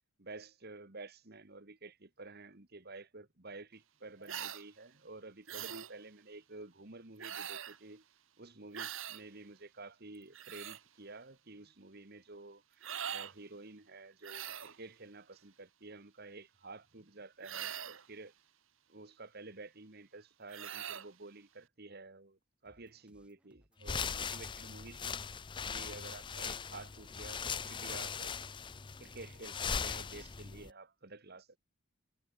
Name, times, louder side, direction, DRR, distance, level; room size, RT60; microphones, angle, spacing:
voice 1, 0.2-8.0 8.4-18.3 18.9-25.2 25.7-28.3 29.0-31.6, right 3 dB, 45° right, 1.7 m, -51 dB
sound 1, 4.3-4.6 5.5-5.9 7.2-7.8 8.7-9.2 10.1-10.8 12.8-13.3 14.2-14.8 17.4-18.1 20.5-21.1, right 9 dB, 65° right, 1.7 m, -42 dB
sound 2, 22.6-29.5, equal, 5° right, 7.8 m, -69 dB
sound 3, 23.8-30.7, left 6 dB, 20° left, 0.5 m, -40 dB
head